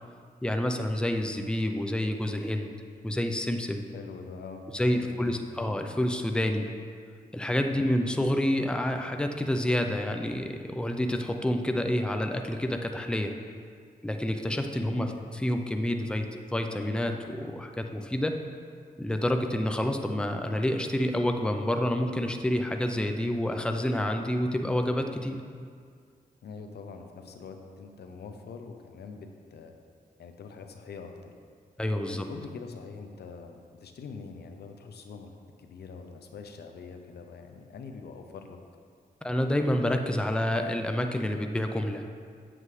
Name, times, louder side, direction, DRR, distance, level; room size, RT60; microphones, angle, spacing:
voice 1, 0.4-2.7 3.0-3.8 4.7-6.7 7.3-13.3 14.0-18.3 19.0-25.4 31.8-32.3 39.2-42.0, left 1 dB, 5° left, 5 dB, 0.5 m, -28 dB
voice 2, 3.9-5.4 7.7-7.9 14.9-15.1 26.4-29.7 30.2-31.3 32.0-35.3 35.6-38.6, left 5 dB, 85° left, 5 dB, 0.6 m, -44 dB
7.8 x 7.5 x 3.2 m, 2.1 s
cardioid pair, 80°, 16 cm